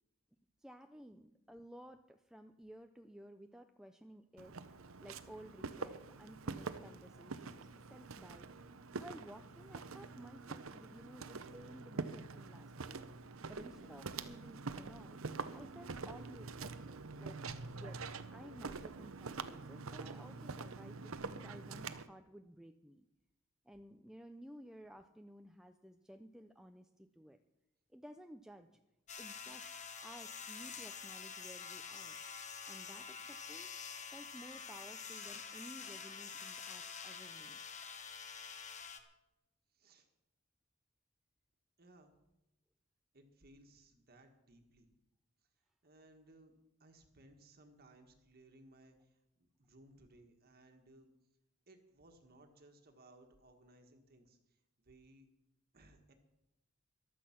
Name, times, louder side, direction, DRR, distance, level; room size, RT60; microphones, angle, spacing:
voice 1, 0.6-8.5 9.0-13.1 13.5-15.2 15.5-17.4 17.7-18.1 18.3-23.1 23.6-27.4 27.9-28.7 29.2-29.7 30.0-32.2 32.7-33.7 34.1-37.6, equal, 5° right, 6 dB, 0.5 m, -55 dB
Walk footsteps, 4.4-22.1, right 4 dB, 70° right, 0.8 m, -46 dB
sound 1, 29.1-39.0, left 6 dB, 35° left, 1.3 m, -47 dB
voice 2, 39.7-40.1 41.8-42.2 43.1-44.9 45.8-46.5 46.8-51.1 51.7-55.3 55.7-56.1, right 1 dB, 50° right, 5 dB, 1.6 m, -62 dB
15.0 x 12.0 x 5.9 m, 0.91 s
head